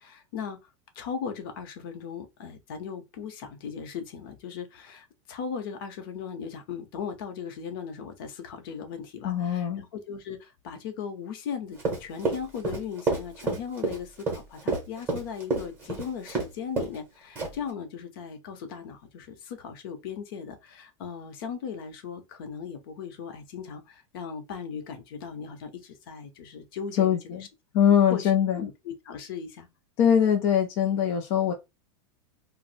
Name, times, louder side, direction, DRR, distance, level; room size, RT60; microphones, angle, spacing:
voice 1, 0.0-27.5 28.1-28.3 28.6-29.7, left 7 dB, 50° left, 0.7 m, -38 dB
voice 2, 9.2-9.8 27.0-27.4 27.7-28.7 30.0-31.5, left 9 dB, 30° left, 0.3 m, -22 dB
Run, 11.8-16.5 16.8-17.0 17.3-17.7, right 3 dB, 15° right, 0.8 m, -29 dB
2.5 x 2.0 x 3.9 m
supercardioid pair, 175°, 15 cm